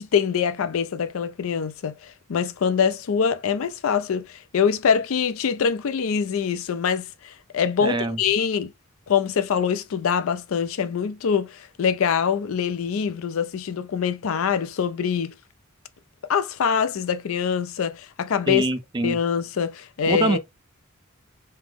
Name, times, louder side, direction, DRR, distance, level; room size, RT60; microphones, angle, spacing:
voice 1, 0.0-8.7 9.1-15.3 16.3-18.7 19.0-20.4, left 7 dB, 75° left, 0.4 m, -24 dB
voice 2, 7.8-8.2 18.5-19.2 20.1-20.4, right 2 dB, 20° right, 0.4 m, -24 dB
3.3 x 2.0 x 3.3 m
head